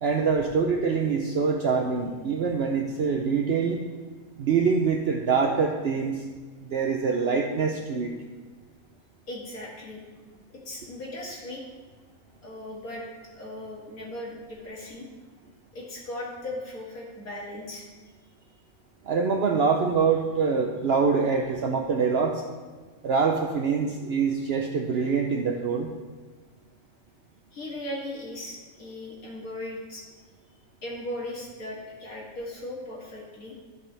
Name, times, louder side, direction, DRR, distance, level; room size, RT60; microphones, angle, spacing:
voice 1, 0.0-3.8 4.4-6.2 6.6-8.1 19.0-22.4 23.0-25.9, right 5 dB, 55° right, 2 dB, 0.8 m, -25 dB
voice 2, 9.3-10.3 10.5-11.6 12.4-13.0 13.3-15.1 15.7-17.8 27.5-30.0 30.8-33.5, left 1 dB, 85° left, -4 dB, 2.6 m, -38 dB
14.5 x 5.3 x 3.3 m, 1.4 s
omnidirectional pair, 1.5 m